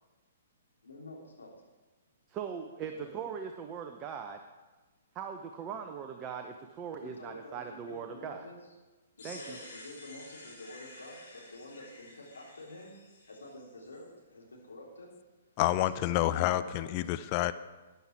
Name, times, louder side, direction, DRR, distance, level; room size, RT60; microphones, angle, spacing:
voice 1, 0.8-1.5 7.0-8.6 9.2-12.9 13.3-15.1 15.9-16.5 16.7-16.9, left 1 dB, 70° left, -3 dB, 3.7 m, -48 dB
voice 2, 2.3-4.4 5.1-8.5 9.2-9.6, right 7 dB, 25° right, 5 dB, 0.8 m, -40 dB
sound 1, 9.2-14.0, left 2 dB, 50° left, 5.2 m, -51 dB
voice 3, 15.6-17.5, left 14 dB, 35° left, 13 dB, 0.5 m, -28 dB
13.5 x 10.0 x 4.7 m, 1.2 s
figure-of-eight pair, 120°, 0 cm